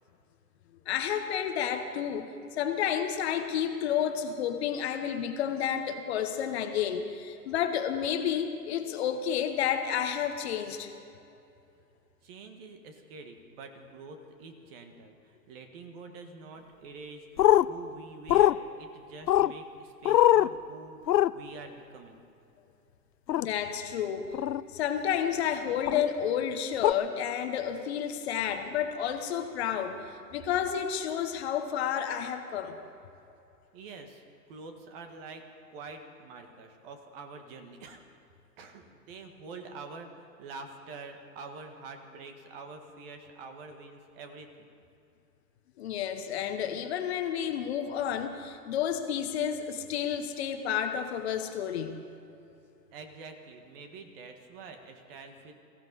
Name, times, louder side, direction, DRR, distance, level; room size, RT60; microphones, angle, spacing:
voice 1, 0.9-10.9 23.4-24.4 24.7-30.0 30.3-32.8 45.8-52.0, left 9 dB, 40° left, 7 dB, 1.1 m, -31 dB
voice 2, 12.2-22.2 33.7-35.4 35.7-38.0 38.6-44.7 52.9-55.5, right 4 dB, 35° right, 5 dB, 1.6 m, -46 dB
sound 1, 17.4-17.7 18.3-18.5 19.3-19.5 20.1-20.5 21.1-21.3 23.3-23.5 24.3-24.6 25.9-26.0 26.8-26.9, left 12 dB, 80° left, 0.6 m, -21 dB
23.0 x 15.0 x 4.1 m, 2.7 s
hypercardioid pair, 135°, 50 cm